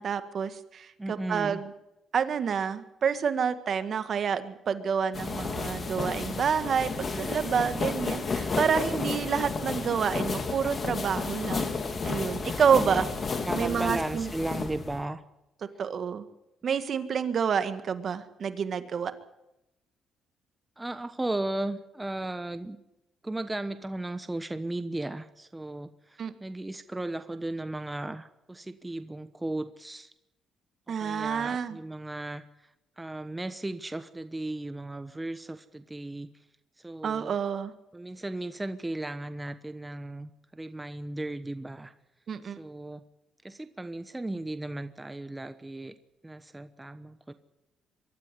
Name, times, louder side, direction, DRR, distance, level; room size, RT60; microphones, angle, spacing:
voice 1, 0.0-1.7 2.1-11.8 12.0-13.1 13.6-14.3 15.8-16.2 16.6-19.1 26.2-26.3 30.9-31.8 37.0-37.7 42.3-42.6, right 7 dB, 55° right, 10 dB, 1.7 m, -28 dB
voice 2, 1.0-1.6 8.8-9.0 12.7-13.1 13.4-15.2 20.8-22.8 23.2-30.1 30.9-36.4 36.8-37.3 37.9-41.9 42.4-43.0 43.4-46.0 46.2-47.3, right 2 dB, 15° right, 10 dB, 1.1 m, -36 dB
sound 1, 5.1-15.0, left 4 dB, 40° left, 2.8 m, -32 dB
23.5 x 13.0 x 9.9 m, 0.90 s
cardioid pair, 90°, 0 cm